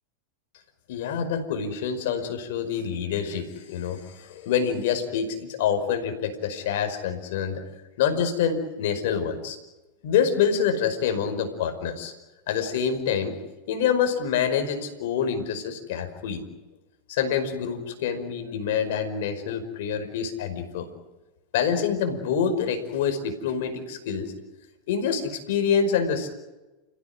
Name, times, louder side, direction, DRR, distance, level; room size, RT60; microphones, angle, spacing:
voice 1, 0.9-7.6 8.0-9.6 10.0-12.1 12.5-13.4 13.7-16.4 17.1-20.9 21.5-24.3 24.9-26.3, left 7 dB, 70° left, 7 dB, 5.3 m, -26 dB
30.0 x 16.0 x 9.8 m, 1.1 s
hypercardioid pair, 100°, 0 cm